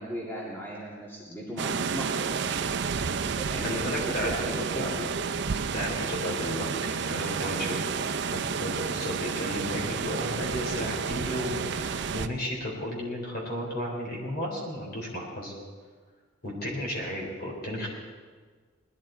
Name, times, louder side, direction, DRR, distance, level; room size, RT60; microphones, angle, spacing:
voice 1, 0.0-5.0, equal, 10° left, -4 dB, 2.1 m, -37 dB
sound 1, 1.6-12.3, right 5 dB, 60° right, 0.6 m, -31 dB
voice 2, 3.6-4.3 4.6-5.1 5.7-7.8 8.3-15.5 16.4-17.9, equal, 50° left, -2 dB, 4.0 m, -33 dB
19.5 x 12.0 x 4.5 m, 1.6 s
head